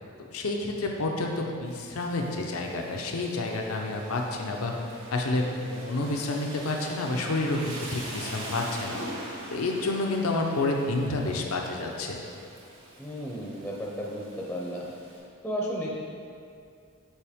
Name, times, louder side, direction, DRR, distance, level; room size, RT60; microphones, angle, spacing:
voice 1, 0.3-4.7 5.1-9.0 9.5-12.2, left 2 dB, 85° left, 1 dB, 0.6 m, -29 dB
Rain, 1.7-15.2, right 1 dB, 65° right, 1.6 m, -43 dB
voice 2, 13.0-14.9 15.4-15.9, equal, 5° left, -3 dB, 0.6 m, -33 dB
7.2 x 4.6 x 3.5 m, 2.4 s
head